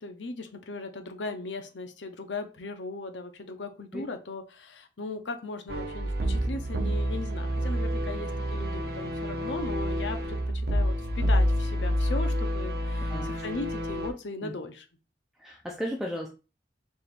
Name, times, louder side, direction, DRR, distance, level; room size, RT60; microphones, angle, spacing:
voice 1, 0.0-10.4 10.7-14.9, left 3 dB, 90° left, 7 dB, 0.7 m, -38 dB
sound 1, 5.7-14.1, equal, 60° right, 0.7 m, -28 dB
voice 2, 15.4-16.3, equal, 5° right, -1 dB, 0.5 m, -34 dB
4.4 x 3.5 x 2.5 m, 0.31 s
head